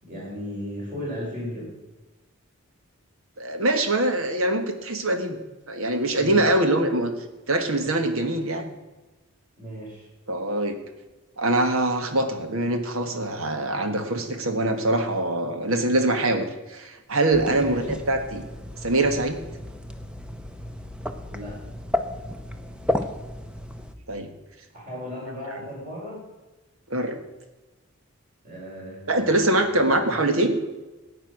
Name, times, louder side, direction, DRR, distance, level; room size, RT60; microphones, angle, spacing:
voice 1, 0.0-1.8 6.2-6.5 9.6-10.1 17.5-17.8 21.3-21.6 24.7-26.3 28.4-29.6 30.1-30.2, equal, 35° right, -4 dB, 5.4 m, -36 dB
voice 2, 3.4-5.4 5.7-7.1 7.5-8.7 10.3-10.8 11.4-18.4 18.8-19.4 24.1-24.3 26.9-27.2 29.1-30.6, right 1 dB, 70° right, 7 dB, 1.5 m, -23 dB
sound 1, 17.3-23.9, left 1 dB, 5° right, 0.6 m, -33 dB
12.5 x 9.1 x 6.4 m, 1.1 s
head